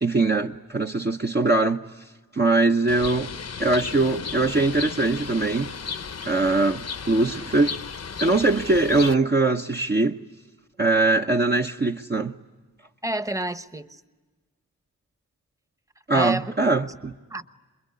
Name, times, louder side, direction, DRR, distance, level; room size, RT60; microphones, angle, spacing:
voice 1, 0.0-1.8 2.3-3.3 3.6-5.7 6.2-7.7 8.2-10.2 10.8-12.4 16.1-17.1, right 2 dB, 30° right, 0.9 m, -22 dB
Bird, 2.9-9.1, left 6 dB, 50° left, 0.9 m, -35 dB
voice 2, 13.0-14.0 16.1-16.5 17.3-17.5, right 1 dB, 10° right, 1.1 m, -29 dB
28.0 x 22.0 x 9.8 m
cardioid pair, 45°, 33 cm